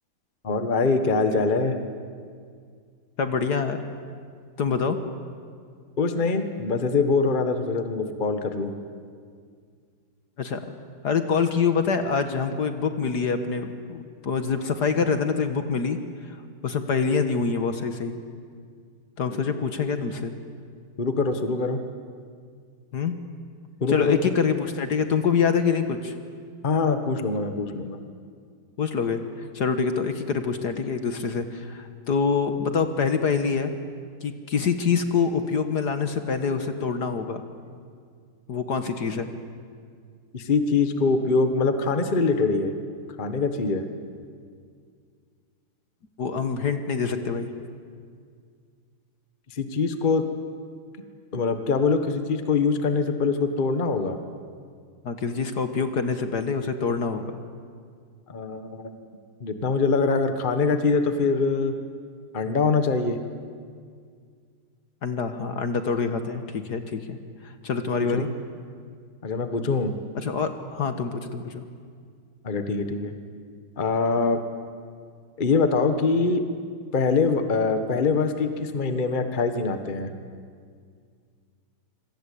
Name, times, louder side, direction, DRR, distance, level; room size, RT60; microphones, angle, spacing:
voice 1, 0.4-1.8 6.0-8.7 19.3-19.4 21.0-21.8 23.8-24.3 26.6-28.0 40.3-42.7 43.2-43.8 49.5-50.2 51.3-54.2 58.3-58.9 59.4-61.7 62.3-63.2 68.1-68.3 69.2-69.9 72.4-73.1 73.8-74.4 75.4-76.4 76.9-80.1, left 4 dB, 25° left, 8 dB, 1.3 m, -23 dB
voice 2, 3.2-3.8 4.6-5.0 10.4-10.7 11.0-16.0 16.3-16.4 16.6-18.1 19.2-20.3 22.9-23.2 23.9-26.1 28.8-33.7 34.2-37.4 38.5-39.3 46.2-47.5 55.0-57.3 65.0-67.2 67.4-68.3 70.2-71.6, left 5 dB, 55° left, 8 dB, 1.8 m, -25 dB
26.5 x 24.5 x 8.5 m, 2.1 s
omnidirectional pair, 2.3 m